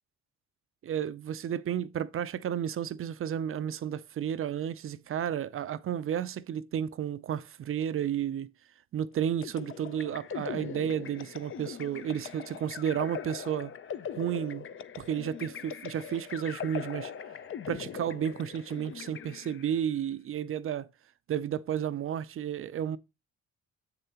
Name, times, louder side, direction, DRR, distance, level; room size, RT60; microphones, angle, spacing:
voice 1, 0.8-8.5 8.9-13.7 14.2-14.7 15.0-17.1 17.7-20.9 21.3-23.0, right 9 dB, 45° right, 0.5 m, -32 dB
sound 1, 9.4-19.8, left 7 dB, 45° left, 0.6 m, -41 dB
7.4 x 6.7 x 2.9 m
cardioid pair, 90°, 30 cm